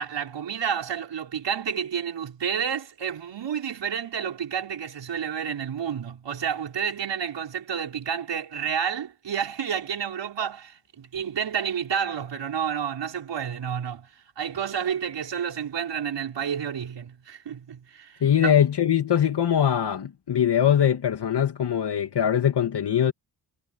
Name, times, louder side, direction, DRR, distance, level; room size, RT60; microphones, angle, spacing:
voice 1, 0.0-14.1 14.4-18.5, right 8 dB, 85° right, 5.9 m, -30 dB
voice 2, 18.2-23.1, left 9 dB, 70° left, 2.5 m, -22 dB
cardioid pair, 75°, 42 cm